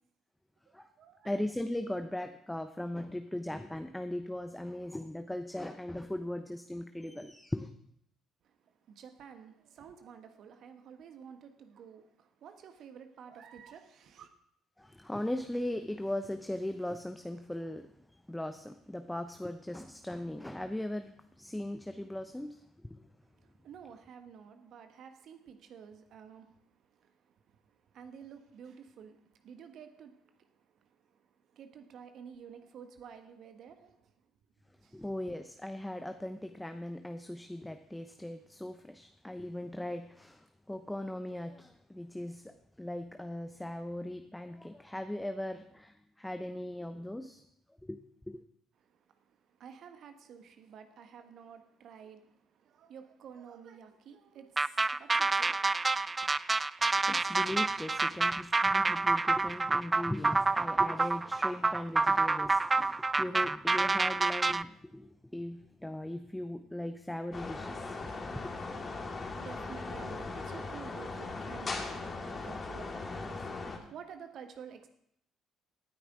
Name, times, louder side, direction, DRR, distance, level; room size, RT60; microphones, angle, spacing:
voice 1, 0.7-1.3 8.4-14.3 23.3-31.1 31.5-34.1 34.8-35.0 48.8-48.9 49.3-56.3 69.1-74.9, right 7 dB, 55° right, 1.4 m, -51 dB
voice 2, 1.2-7.7 14.8-17.9 18.3-23.0 34.9-47.4 47.8-48.4 57.1-68.6, left 1 dB, 10° left, 0.9 m, -39 dB
sound 1, 54.6-64.6, right 3 dB, 25° right, 0.4 m, -28 dB
sound 2, 67.3-73.8, left 3 dB, 35° left, 2.2 m, -39 dB
18.0 x 9.8 x 3.8 m
hypercardioid pair, 50°, 0 cm